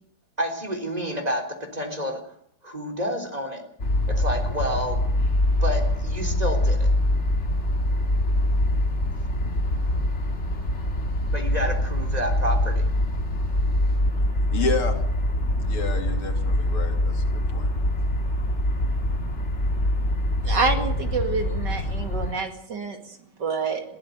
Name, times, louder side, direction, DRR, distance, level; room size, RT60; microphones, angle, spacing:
voice 1, 0.4-1.4 1.7-2.2 2.6-3.6 4.1-5.0 5.6-6.9 11.3-12.9, equal, 15° right, 4 dB, 3.7 m, -29 dB
sound 1, 3.8-22.3, left 1 dB, 30° left, 2.4 m, -24 dB
voice 2, 14.5-15.0 15.6-17.7, left 4 dB, 75° left, 4 dB, 3.9 m, -30 dB
voice 3, 20.4-23.8, right 4 dB, 50° right, 6 dB, 2.7 m, -27 dB
21.5 x 15.0 x 8.0 m, 0.68 s
omnidirectional pair, 2.4 m